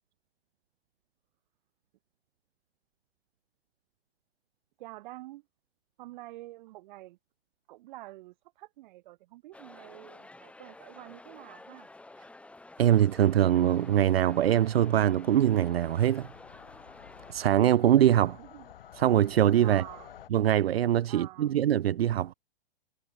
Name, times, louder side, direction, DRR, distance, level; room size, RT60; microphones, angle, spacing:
voice 1, 4.8-5.5 6.0-7.2 7.7-11.9 18.4-18.7 19.6-20.2 21.1-21.5, right 18 dB, 50° right, 2.9 m, -47 dB
sound 1, 9.5-17.3, left 2 dB, 5° left, 1.5 m, -51 dB
voice 2, 12.8-16.3 17.3-18.4 19.0-19.8 20.3-22.3, right 11 dB, 75° right, 0.5 m, -23 dB
sound 2, 13.6-20.3, left 10 dB, 65° left, 2.5 m, -52 dB
hypercardioid pair, 115°, 30 cm